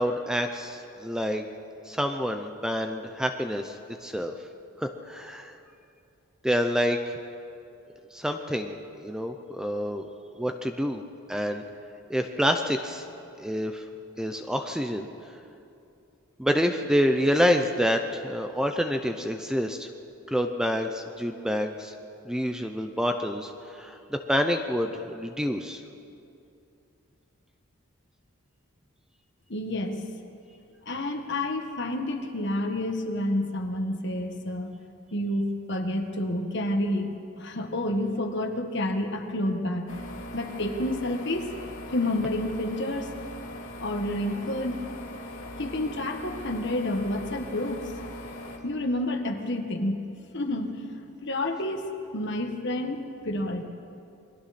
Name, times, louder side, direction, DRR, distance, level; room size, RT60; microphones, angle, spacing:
voice 1, 0.0-1.4 1.9-4.3 4.8-5.5 6.4-7.1 8.1-10.1 10.4-11.0 11.3-11.6 12.1-13.0 13.4-13.8 14.2-15.1 16.4-19.9 20.3-21.9 22.3-23.5 23.8-25.8, equal, 5° right, 5 dB, 0.7 m, -27 dB
voice 2, 29.5-30.0 30.8-34.8 35.1-37.1 37.4-39.9 40.3-41.5 41.9-43.1 43.8-44.8 45.6-47.9 48.6-50.0 50.3-50.8 51.2-53.6, left 1 dB, 55° left, 5 dB, 1.6 m, -29 dB
sound 1, 39.9-48.6, left 1 dB, 70° left, 2.5 m, -40 dB
28.5 x 22.0 x 4.3 m, 2.6 s
head